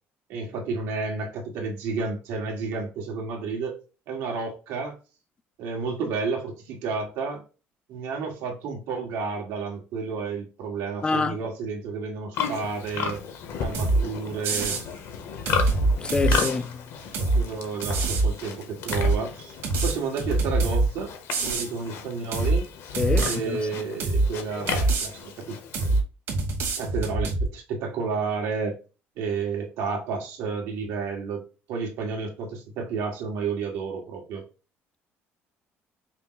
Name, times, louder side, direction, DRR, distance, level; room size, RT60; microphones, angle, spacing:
voice 1, 0.3-3.8 4.1-5.0 5.6-7.4 7.9-13.2 13.6-14.8 17.3-19.5 19.8-21.1 21.4-22.7 23.2-26.0 26.8-28.8 29.2-31.4 31.7-34.4, right 4 dB, 80° right, 1.6 m, -31 dB
voice 2, 11.0-11.4 16.0-16.8 23.0-23.6, left 4 dB, 20° left, 0.3 m, -26 dB
Livestock farm animals working animals, 12.3-26.0, left 6 dB, 65° left, 1.0 m, -34 dB
sound 1, 13.7-14.0 14.4-14.8 15.5-16.5 17.1-17.4 17.8-18.3 18.9-19.2 19.6-20.9 21.3-21.7 22.3-22.6 22.9-23.4 24.0-24.3 24.7-25.1 25.7-26.0 26.3-27.4, right 2 dB, 60° right, 1.6 m, -24 dB
5.6 x 2.1 x 3.9 m
cardioid pair, 155°, 5 cm